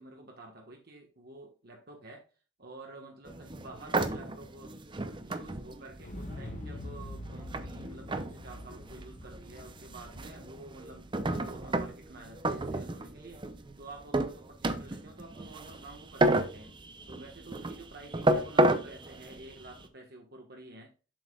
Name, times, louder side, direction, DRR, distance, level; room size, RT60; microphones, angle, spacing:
voice 1, 0.0-2.2 2.6-4.7 5.2-11.1 11.4-13.4 13.8-16.8 17.1-20.9, right 2 dB, 55° right, 1 dB, 1.4 m, -49 dB
sound 1, 3.3-19.9, right 1 dB, 25° right, 0.6 m, -32 dB
Explosion, 6.0-12.0 12.4-12.5, left 1 dB, 40° left, 1.0 m, -45 dB
7.5 x 7.2 x 2.3 m, 0.34 s
head